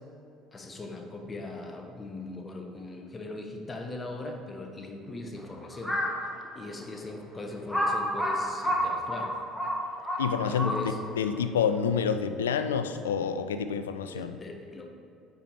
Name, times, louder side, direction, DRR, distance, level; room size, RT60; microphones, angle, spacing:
voice 1, 0.5-6.0 6.5-9.3 10.1-11.0 14.0-14.9, left 2 dB, 20° left, 3 dB, 1.0 m, -40 dB
Crow, 5.7-6.2 6.8-6.9 7.7-11.1, equal, ahead, 1.4 m, -29 dB
voice 2, 10.2-14.4, left 7 dB, 75° left, 9 dB, 0.3 m, -28 dB
8.7 x 4.8 x 4.3 m, 2.6 s
figure-of-eight pair, 55°, 0 cm